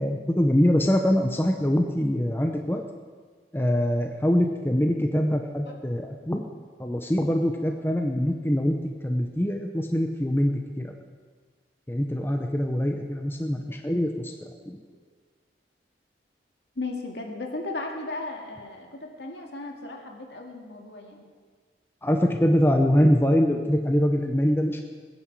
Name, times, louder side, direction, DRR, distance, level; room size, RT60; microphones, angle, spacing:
voice 1, 0.0-2.8 3.5-6.4 6.8-10.9 11.9-14.8 22.0-24.8, equal, 10° left, 4 dB, 0.8 m, -24 dB
voice 2, 16.8-21.2, left 2 dB, 70° left, 1 dB, 2.1 m, -36 dB
20.5 x 10.0 x 4.7 m, 1.5 s
head